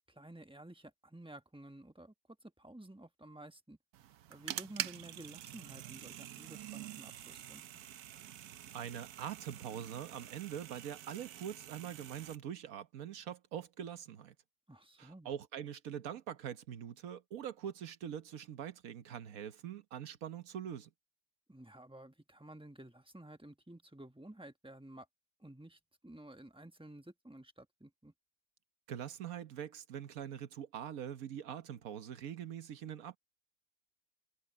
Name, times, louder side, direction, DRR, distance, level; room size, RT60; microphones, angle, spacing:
voice 1, 0.1-2.1 2.4-3.8 4.3-7.6 14.7-15.3 21.5-25.1 25.4-28.1, right 1 dB, 5° right, 1.1 m, -53 dB
sound 1, 3.9-12.4, right 12 dB, 85° right, 1.2 m, -46 dB
voice 2, 8.7-14.3 15.0-20.9 28.9-33.2, right 9 dB, 70° right, 1.4 m, -43 dB
omnidirectional pair, 1.6 m